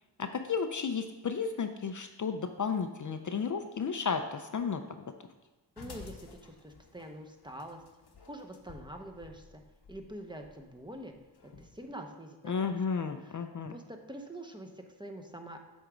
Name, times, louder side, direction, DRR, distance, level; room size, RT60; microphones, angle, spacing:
voice 1, 0.2-5.0 12.4-13.7, left 6 dB, 45° left, 7 dB, 0.5 m, -33 dB
sound 1, 5.8-11.9, left 4 dB, 65° left, 0.9 m, -53 dB
voice 2, 5.8-7.8 8.2-9.6 9.9-11.1 11.6-12.7 13.2-13.3 13.7-15.6, right 1 dB, 10° right, 3 dB, 0.7 m, -45 dB
8.1 x 3.5 x 5.0 m, 1.1 s
cardioid pair, 65°, 43 cm